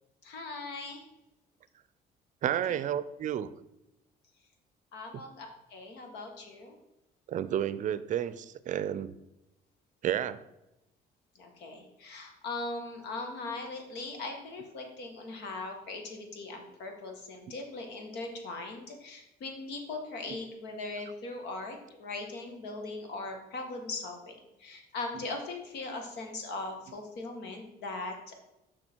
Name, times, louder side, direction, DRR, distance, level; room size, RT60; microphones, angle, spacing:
voice 1, 0.2-1.1 2.7-2.8 4.9-6.8 11.4-28.4, left 3 dB, 80° left, 4 dB, 1.6 m, -40 dB
voice 2, 2.4-3.5 7.3-9.1 10.0-10.4, right 10 dB, 50° right, 15 dB, 0.5 m, -31 dB
6.3 x 6.0 x 4.5 m, 0.93 s
cardioid pair, 110°, 17 cm